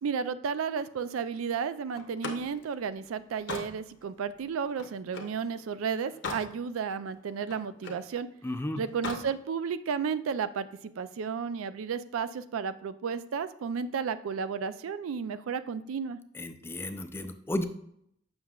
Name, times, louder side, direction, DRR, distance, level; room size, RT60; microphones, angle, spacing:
voice 1, 0.0-8.3 8.8-10.7 11.0-16.2, right 6 dB, 85° right, 14 dB, 0.4 m, -33 dB
Slam, 1.9-5.4 5.9-6.5 6.9-8.1 8.9-9.3, left 3 dB, 60° left, 0.8 m, -40 dB
voice 2, 8.4-8.8 16.3-17.7, left 1 dB, 10° left, 9 dB, 0.4 m, -33 dB
7.4 x 5.9 x 2.3 m, 0.72 s
head